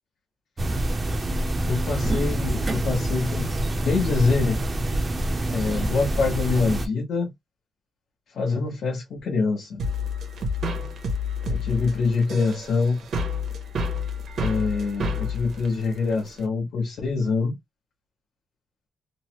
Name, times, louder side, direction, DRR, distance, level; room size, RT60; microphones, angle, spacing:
sound 1, 0.6-6.9, right 1 dB, 25° right, 0.5 m, -26 dB
voice 1, 1.4-4.6 5.5-7.3 8.3-9.8 11.5-13.0 14.4-17.6, left 4 dB, 65° left, 0.9 m, -25 dB
sound 2, 9.8-16.4, left 3 dB, 60° right, 0.8 m, -29 dB
3.1 x 2.1 x 2.9 m
wide cardioid pair, 170°, 0 cm